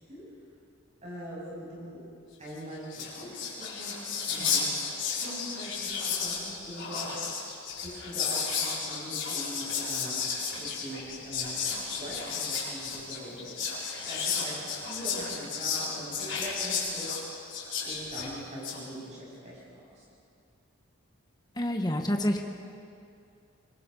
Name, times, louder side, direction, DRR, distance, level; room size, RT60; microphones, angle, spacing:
voice 1, 1.0-2.0 2.4-3.5 3.8-4.7 5.0-7.2 7.8-10.2 10.5-17.1 17.8-20.0, equal, 30° right, -5 dB, 7.5 m, -42 dB
Whispering, 2.6-2.7 2.8-18.8, left 5 dB, 55° left, 5.0 m, -33 dB
voice 2, 21.6-22.4, equal, 20° left, 4 dB, 1.4 m, -27 dB
24.5 x 21.5 x 5.6 m, 2.5 s
head